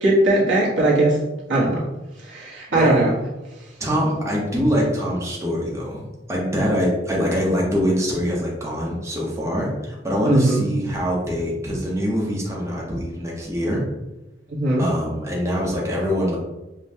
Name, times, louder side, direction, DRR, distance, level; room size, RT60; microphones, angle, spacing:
voice 1, 0.0-1.2 1.5-1.8 2.3-3.1 10.2-10.6 14.5-14.8, right 1 dB, 90° right, -6 dB, 1.2 m, -19 dB
voice 2, 3.8-6.0 6.3-13.8 14.8-16.4, equal, 15° right, -4 dB, 0.8 m, -24 dB
5.2 x 2.2 x 2.7 m, 1.0 s
head